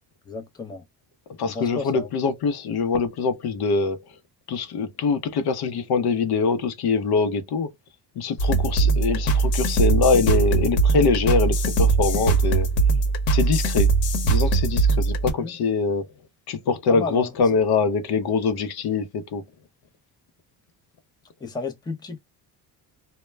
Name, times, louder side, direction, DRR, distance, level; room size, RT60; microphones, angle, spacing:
voice 1, 0.3-0.8 1.4-2.1 8.8-9.5 15.4-15.5 16.9-17.4 21.4-22.2, left 3 dB, 10° left, 0.5 m, -33 dB
voice 2, 1.4-4.0 4.5-7.7 8.2-12.7 13.3-13.9 14.2-16.1 16.5-19.4, left 4 dB, 60° left, 0.7 m, -23 dB
sound 1, 8.4-15.3, right 4 dB, 80° left, 1.0 m, -21 dB
2.1 x 2.1 x 3.1 m
cardioid pair, 90°, 44 cm